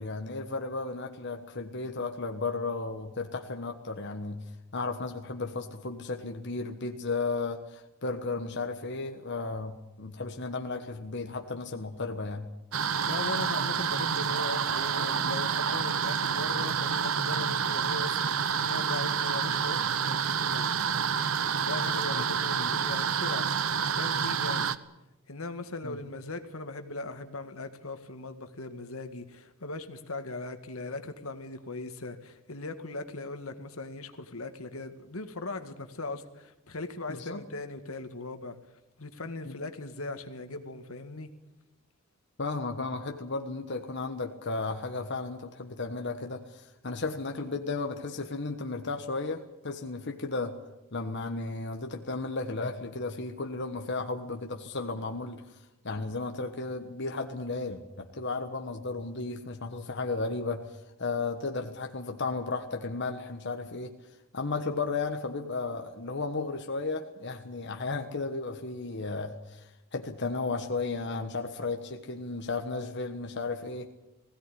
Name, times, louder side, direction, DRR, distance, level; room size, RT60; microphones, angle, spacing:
voice 1, 0.0-12.5 22.1-22.2 22.6-22.7 25.8-26.0 37.1-37.4 39.4-39.5 42.4-50.6 50.9-55.6 55.8-64.0 64.3-73.9, left 3 dB, 55° left, 1.4 m, -34 dB
sound 1, 12.7-24.8, right 7 dB, 70° right, 0.9 m, -28 dB
voice 2, 13.0-20.9 21.6-23.5 23.9-24.8 25.3-38.6 39.0-41.3, left 2 dB, 80° left, 1.9 m, -39 dB
20.0 x 16.5 x 10.0 m
head